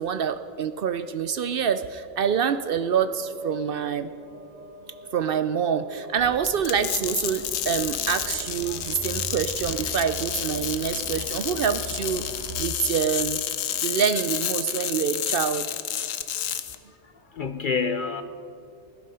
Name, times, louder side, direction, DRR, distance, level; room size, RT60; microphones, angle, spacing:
voice 1, 0.0-4.1 5.1-12.3 12.6-13.4 13.8-15.7, right 7 dB, 60° right, 12 dB, 0.6 m, -26 dB
sound 1, 2.1-14.6, right 1 dB, 80° right, 2.1 m, -47 dB
Truck, 6.2-12.6, right 1 dB, 20° right, 0.6 m, -40 dB
sound 2, 6.4-16.7, left 10 dB, 90° left, 1.1 m, -30 dB
voice 2, 17.0-18.2, left 5 dB, 55° left, 9 dB, 0.6 m, -28 dB
17.0 x 11.0 x 5.6 m, 2.6 s
omnidirectional pair, 1.3 m